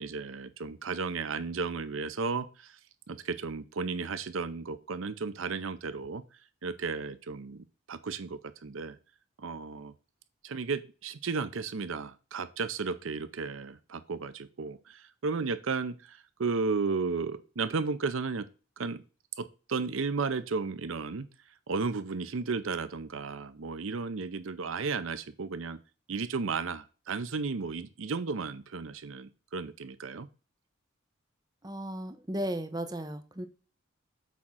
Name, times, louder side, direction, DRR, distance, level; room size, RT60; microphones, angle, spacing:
voice 1, 0.0-2.8 3.1-6.2 6.6-9.0 9.4-9.9 10.4-18.5 18.8-19.0 19.4-21.3 21.7-25.8 26.1-30.3, right 4 dB, 75° right, 13 dB, 0.6 m, -34 dB
voice 2, 31.6-33.5, right 1 dB, 20° right, 9 dB, 0.8 m, -35 dB
8.4 x 3.7 x 6.1 m, 0.35 s
head